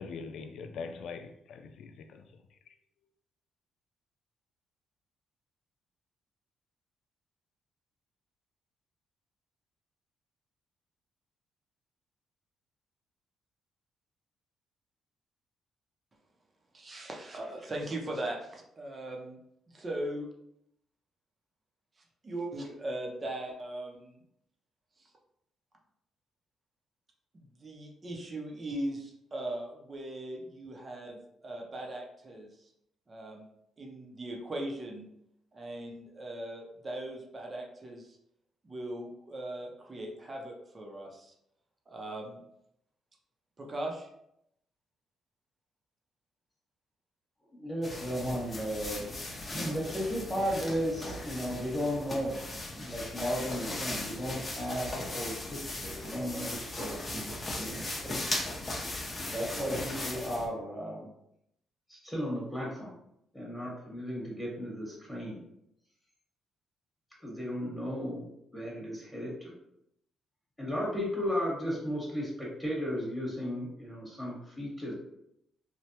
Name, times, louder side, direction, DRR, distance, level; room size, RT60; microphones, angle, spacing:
voice 1, 0.0-2.2, left 5 dB, 75° left, 0.3 m, -42 dB
voice 2, 16.7-19.4 19.7-20.3 22.2-24.2 25.0-25.1 27.3-32.7 33.1-33.4 33.8-35.1 35.5-38.2 38.6-41.3 41.9-42.4 43.6-44.1, right 1 dB, 35° right, 0.7 m, -39 dB
voice 3, 47.5-49.1 49.5-52.4 52.7-55.6 55.8-58.2 59.3-61.1 61.9-62.9 63.3-65.4 67.2-69.6 70.6-74.9, equal, 5° left, 1.2 m, -35 dB
sound 1, 47.8-60.5, left 2 dB, 25° left, 0.7 m, -38 dB
3.2 x 2.2 x 2.8 m
cardioid pair, 90°, 0 cm